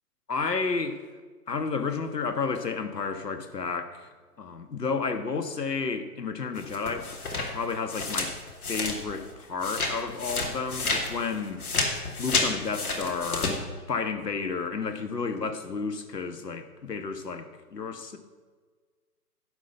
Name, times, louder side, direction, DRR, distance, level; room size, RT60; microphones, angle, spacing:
voice 1, 0.3-1.0 1.5-4.1 4.4-7.2 7.5-8.4 8.7-11.6 12.2-13.6 13.9-18.2, left 4 dB, 85° left, 9 dB, 1.4 m, -31 dB
sound 1, 6.5-9.3 9.6-13.5, left 3 dB, 65° left, 2.6 m, -30 dB
11.0 x 5.8 x 8.0 m, 1.4 s
hypercardioid pair, 145°, 47 cm